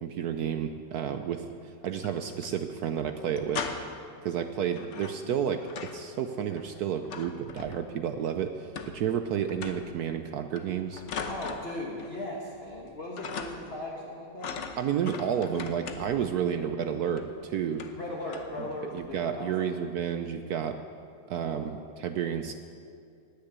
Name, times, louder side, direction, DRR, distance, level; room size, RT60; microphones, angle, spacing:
voice 1, 0.0-3.7 4.2-5.6 5.9-11.0 14.8-17.8 18.3-18.7 18.9-20.8 21.3-22.5, right 8 dB, 75° right, 8 dB, 0.8 m, -31 dB
sound 1, 1.8-2.5 2.8-2.9 3.2-4.1 4.7-6.1 6.3-8.1 8.8-9.2 9.5-10.0 10.6-12.2 12.5-12.9 13.2-13.8 14.4-16.3 17.2-17.3 17.7-18.0 18.3-18.6 19.0-19.2, left 5 dB, 60° left, 0.8 m, -40 dB
voice 2, 11.3-14.7 15.3-15.5 16.6-16.7 17.9-19.7 21.4-21.7, left 1 dB, 35° left, -2 dB, 1.4 m, -38 dB
19.0 x 6.7 x 8.1 m, 2.4 s
omnidirectional pair, 2.3 m